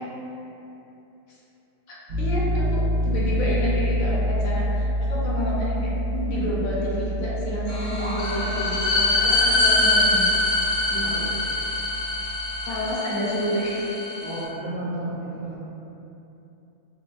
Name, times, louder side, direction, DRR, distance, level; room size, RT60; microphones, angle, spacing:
voice 1, 1.9-10.3 10.9-11.2 12.6-14.0, left 1 dB, 75° left, -7 dB, 1.1 m, -29 dB
Piano, 2.1-12.9, equal, 80° right, 1.1 m, -28 dB
sound 1, 7.7-14.4, left 2 dB, 40° left, 0.5 m, -24 dB
voice 2, 11.0-11.4 14.2-15.6, right 1 dB, 55° right, -10 dB, 0.8 m, -33 dB
4.1 x 2.1 x 2.3 m, 2.9 s
omnidirectional pair, 1.5 m